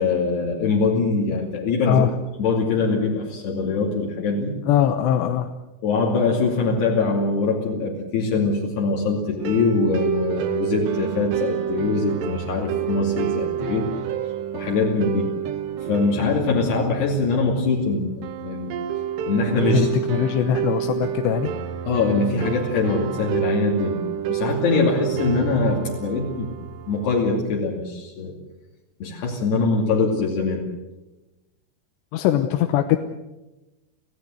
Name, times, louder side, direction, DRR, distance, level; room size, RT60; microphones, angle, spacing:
voice 1, 0.0-2.0 2.4-4.6 5.8-13.9 14.5-15.3 15.9-18.7 19.2-19.9 21.9-26.5 26.9-28.3 29.0-30.6, left 3 dB, 75° left, -2 dB, 4.7 m, -23 dB
voice 2, 4.7-5.5 16.2-16.3 19.7-21.5 32.1-33.0, left 10 dB, 90° left, 7 dB, 3.2 m, -21 dB
sound 1, 9.4-27.4, right 10 dB, 85° right, 3.4 m, -29 dB
27.5 x 16.5 x 7.9 m, 1.1 s
omnidirectional pair, 4.9 m